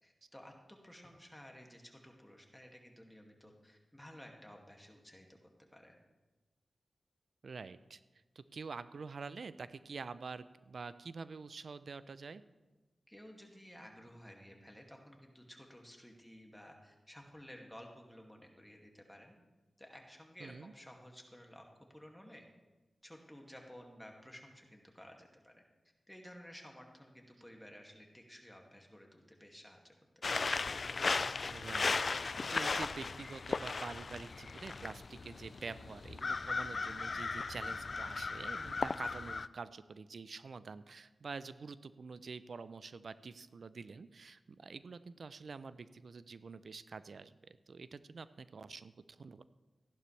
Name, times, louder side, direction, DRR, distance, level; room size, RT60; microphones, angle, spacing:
voice 1, 0.0-5.4 5.7-6.0 13.1-19.3 19.8-21.6 21.9-22.4 23.0-25.6 26.1-29.9, equal, 10° left, 1 dB, 2.2 m, -54 dB
voice 2, 7.4-8.0 8.4-12.4 20.4-20.7 31.5-49.4, right 4 dB, 70° right, 14 dB, 0.5 m, -47 dB
sound 1, 30.2-39.5, left 4 dB, 60° left, 0.3 m, -37 dB
14.5 x 11.5 x 3.3 m, 1.2 s
cardioid pair, 50°, 0 cm